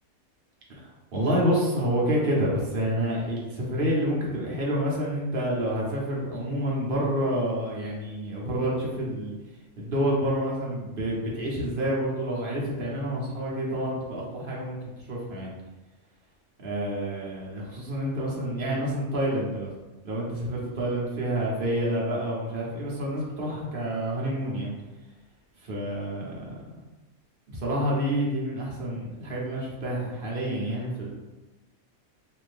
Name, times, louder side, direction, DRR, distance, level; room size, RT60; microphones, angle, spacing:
voice 1, 0.7-9.4 9.8-15.5 16.6-19.7 20.0-24.7 25.6-26.6 27.5-31.1, equal, 45° right, -4 dB, 0.9 m, -28 dB
2.7 x 2.6 x 3.2 m, 1.1 s
omnidirectional pair, 1.5 m